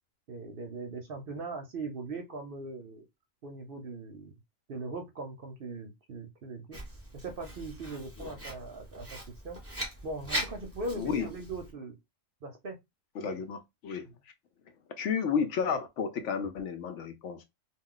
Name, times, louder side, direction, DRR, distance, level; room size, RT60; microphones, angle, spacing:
voice 1, 0.3-3.0 3.4-4.3 4.7-6.8 7.1-9.2 9.4-9.6 10.0-12.0 12.4-12.8 13.2-13.4, right 3 dB, 55° right, 0.7 m, -40 dB
Writing, 6.7-11.7, right 1 dB, 10° right, 0.9 m, -40 dB
voice 2, 11.0-11.3 13.2-14.1 15.0-17.4, left 6 dB, 70° left, 0.8 m, -32 dB
2.3 x 2.3 x 3.6 m
omnidirectional pair, 1.4 m